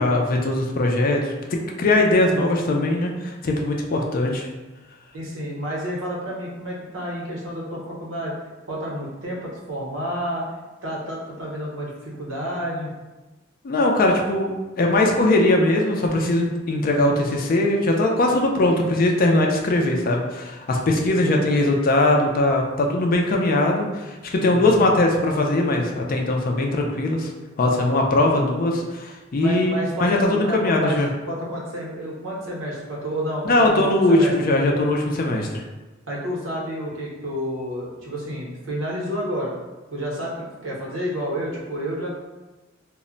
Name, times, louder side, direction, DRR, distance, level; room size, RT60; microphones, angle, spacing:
voice 1, 0.0-1.3 1.8-4.5 13.6-27.3 27.6-31.1 33.4-35.7, left 2 dB, 45° left, 1 dB, 0.4 m, -20 dB
voice 2, 5.1-8.3 8.7-10.4 10.8-12.9 20.9-21.3 24.4-24.7 29.3-31.0 31.3-34.3 36.1-39.5 39.9-42.1, equal, 85° right, -4 dB, 0.8 m, -30 dB
2.1 x 2.1 x 3.7 m, 1.1 s
head